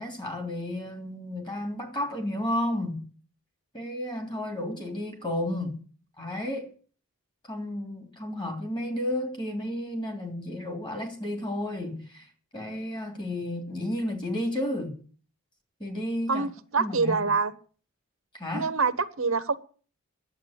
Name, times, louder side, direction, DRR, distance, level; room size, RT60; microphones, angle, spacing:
voice 1, 0.0-3.0 3.7-5.8 6.2-6.7 7.4-15.0 15.8-16.5 16.8-17.2 18.3-18.7, left 1 dB, 20° left, 2.9 m, -32 dB
voice 2, 16.3-17.5 18.5-19.6, right 4 dB, 70° right, 0.9 m, -26 dB
10.5 x 8.2 x 8.8 m
head